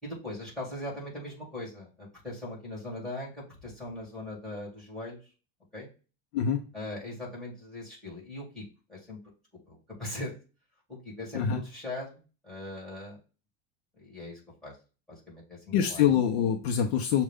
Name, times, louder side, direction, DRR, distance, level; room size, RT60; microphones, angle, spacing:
voice 1, 0.0-5.2 5.7-5.9 6.7-8.6 8.9-9.2 9.7-10.3 10.9-13.2 14.0-14.7 15.1-16.0, left 1 dB, ahead, -4 dB, 1.9 m, -40 dB
voice 2, 15.7-17.2, left 8 dB, 55° left, 2 dB, 0.7 m, -25 dB
6.4 x 2.4 x 3.4 m, 0.34 s
supercardioid pair, 175°, 38 cm